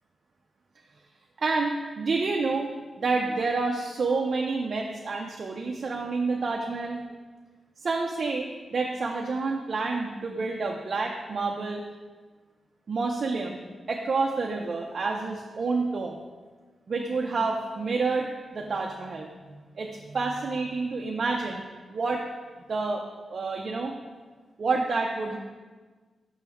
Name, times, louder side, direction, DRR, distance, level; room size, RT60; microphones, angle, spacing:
voice 1, 1.4-2.7 3.0-7.0 7.8-11.8 12.9-16.2 16.9-19.3 19.8-21.6 21.9-22.2 22.7-23.0 23.3-23.9 24.6-25.4, right 3 dB, 40° right, 1 dB, 0.4 m, -28 dB
6.1 x 3.5 x 5.7 m, 1.4 s
wide cardioid pair, 175°, 0 cm